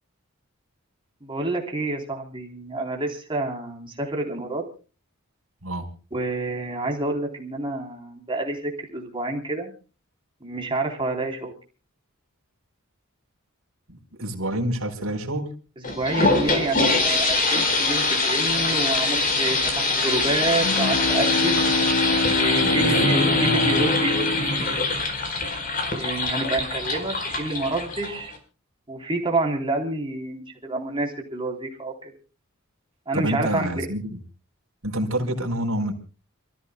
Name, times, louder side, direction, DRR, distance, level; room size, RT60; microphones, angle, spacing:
voice 1, 1.2-4.6 6.1-9.7 10.4-11.5 15.9-21.7 22.3-25.0 25.9-28.3 28.9-32.1 33.1-33.7, right 2 dB, 25° right, 2 dB, 3.5 m, -28 dB
voice 2, 13.9-15.5 22.6-22.9 33.1-34.2 34.8-35.9, right 1 dB, 75° right, 3 dB, 4.5 m, -27 dB
sound 1, 15.8-28.4, left 3 dB, 40° left, 4.4 m, -23 dB
Bowed string instrument, 20.3-25.7, left 2 dB, 85° left, 0.8 m, -26 dB
29.0 x 15.0 x 2.3 m, 0.36 s
head